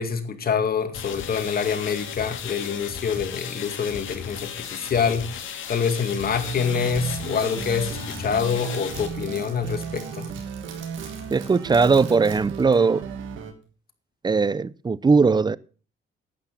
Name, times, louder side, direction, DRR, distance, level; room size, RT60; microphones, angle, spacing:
voice 1, 0.0-5.3 5.7-10.3, left 6 dB, 50° left, 2.3 m, -26 dB
sound 1, 0.9-9.1, left 8 dB, 80° left, 2.3 m, -36 dB
Crackle, 5.7-12.8, right 6 dB, 70° right, 4.0 m, -46 dB
sound 2, 6.2-13.5, right 6 dB, 90° right, 2.0 m, -36 dB
voice 2, 11.3-13.0 14.2-15.6, right 4 dB, 20° right, 0.6 m, -19 dB
11.5 x 9.0 x 5.7 m
cardioid pair, 90°, 20 cm